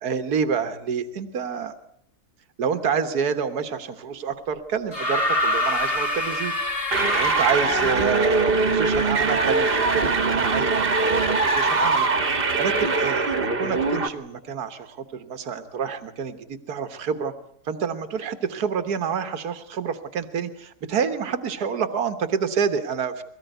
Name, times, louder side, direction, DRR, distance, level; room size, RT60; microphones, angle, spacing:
voice 1, 0.0-1.7 2.6-6.5 7.1-12.1 12.5-17.3 17.7-23.2, right 6 dB, 75° right, 9 dB, 1.9 m, -28 dB
sound 1, 4.9-8.0 9.2-9.3, left 1 dB, 35° left, 2.4 m, -26 dB
sound 2, 6.9-14.1, right 3 dB, 35° right, 1.6 m, -22 dB
23.5 x 18.0 x 9.3 m, 0.70 s
omnidirectional pair, 1.7 m